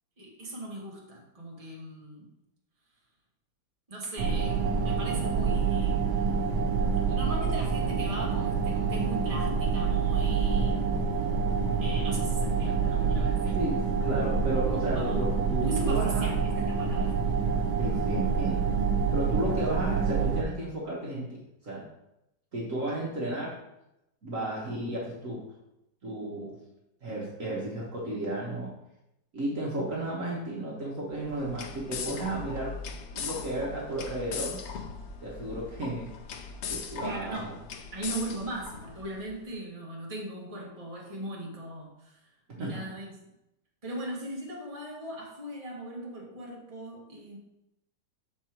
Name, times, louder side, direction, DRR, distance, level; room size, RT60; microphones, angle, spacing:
voice 1, 0.2-2.3 3.9-6.8 7.1-10.8 11.8-13.6 14.9-15.2 15.6-17.2 37.0-37.5 37.9-42.2 42.6-43.2 43.8-47.4, right 1 dB, 20° right, -4 dB, 1.6 m, -39 dB
sound 1, 4.2-20.4, right 5 dB, 80° right, 1.4 m, -27 dB
voice 2, 13.4-16.3 17.8-18.6 19.1-21.9 22.5-23.6 24.2-25.5 26.0-26.6 27.0-28.7 29.3-32.8 33.1-34.6 35.2-36.1 36.7-37.5 42.6-42.8, right 1 dB, 50° right, -4 dB, 1.6 m, -33 dB
sound 2, 31.1-39.3, left 6 dB, 65° left, 0.7 m, -39 dB
6.9 x 4.7 x 4.5 m, 0.86 s
omnidirectional pair, 1.9 m